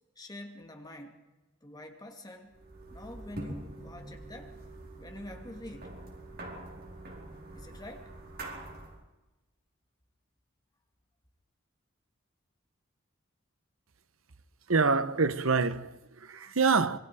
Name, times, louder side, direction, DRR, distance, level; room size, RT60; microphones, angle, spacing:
voice 1, 0.2-1.2 1.6-2.6 2.9-4.5 5.0-6.0 7.5-8.1, left 1 dB, 20° left, 2.5 m, -46 dB
sound 1, 2.5-9.0, right 1 dB, 50° right, 4.5 m, -45 dB
voice 2, 14.7-17.0, right 4 dB, 85° right, 1.1 m, -26 dB
26.0 x 23.0 x 5.0 m
head